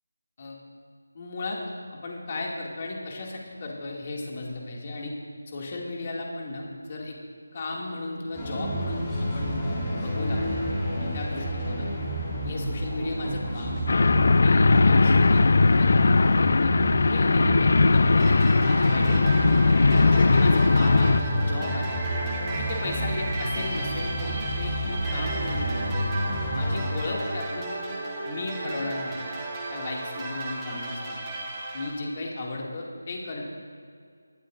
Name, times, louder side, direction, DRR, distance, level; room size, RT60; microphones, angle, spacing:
voice 1, 1.1-1.6 2.0-5.1 5.5-7.2 7.5-9.1 9.3-9.6 9.9-10.6 10.9-12.0 12.4-13.8 14.4-19.8 20.3-22.0 22.6-26.1 26.5-27.8 28.2-29.2 29.7-31.3 31.7-33.4, left 2 dB, 35° left, -2 dB, 2.2 m, -35 dB
sound 1, 8.3-26.9, equal, 20° left, 3.4 m, -30 dB
sound 2, 13.9-21.2, left 3 dB, 55° left, 0.4 m, -19 dB
sound 3, 18.2-31.9, right 2 dB, 15° right, 1.9 m, -34 dB
19.5 x 13.0 x 2.6 m, 2.2 s
figure-of-eight pair, 160°, 0 cm